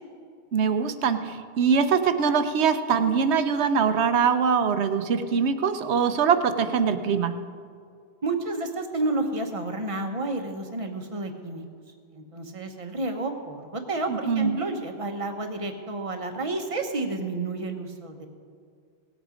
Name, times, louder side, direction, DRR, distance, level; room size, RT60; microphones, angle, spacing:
voice 1, 0.5-7.3 14.1-14.6, right 6 dB, 70° right, 10 dB, 1.0 m, -23 dB
voice 2, 8.2-11.6 12.1-18.3, right 2 dB, 30° right, 5 dB, 1.0 m, -30 dB
18.0 x 8.3 x 5.0 m, 2.2 s
omnidirectional pair, 1.2 m